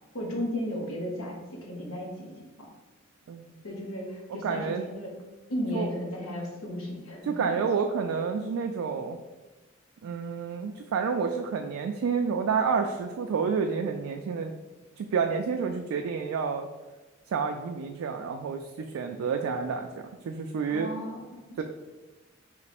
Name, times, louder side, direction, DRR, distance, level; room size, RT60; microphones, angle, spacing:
voice 1, 0.1-2.3 2.6-2.7 3.6-5.1 5.5-7.5 20.7-21.6, left 1 dB, 85° left, -1 dB, 1.1 m, -35 dB
voice 2, 4.4-4.8 5.7-5.9 7.2-9.2 10.0-14.5 15.0-16.7 17.3-20.9 21.6-21.7, right 5 dB, 85° right, 4 dB, 0.3 m, -29 dB
3.2 x 3.1 x 4.2 m, 1.1 s
head